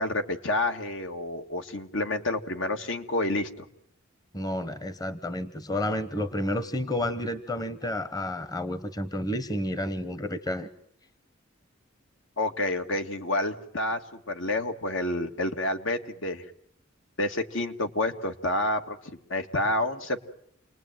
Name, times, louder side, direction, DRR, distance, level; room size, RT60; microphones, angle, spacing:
voice 1, 0.0-3.7 12.4-16.5 17.2-19.0 19.3-20.2, left 2 dB, 70° left, 6 dB, 2.0 m, -29 dB
voice 2, 4.3-10.7, left 1 dB, 20° left, 13 dB, 1.1 m, -30 dB
29.0 x 20.0 x 9.2 m, 0.73 s
head